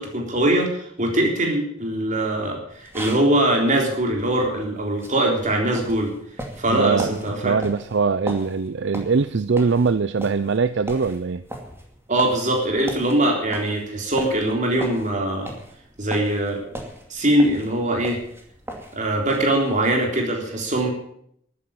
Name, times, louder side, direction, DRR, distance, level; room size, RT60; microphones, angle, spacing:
voice 1, 0.0-6.1 6.6-7.6 12.1-15.5 16.0-16.6 17.1-18.2 18.9-20.9, right 1 dB, 40° right, 1 dB, 3.6 m, -22 dB
sound 1, 2.7-19.9, right 1 dB, 10° right, 2.4 m, -39 dB
voice 2, 6.7-7.2 7.4-11.4, right 4 dB, 60° right, 14 dB, 0.5 m, -22 dB
13.0 x 9.7 x 8.7 m, 0.71 s
head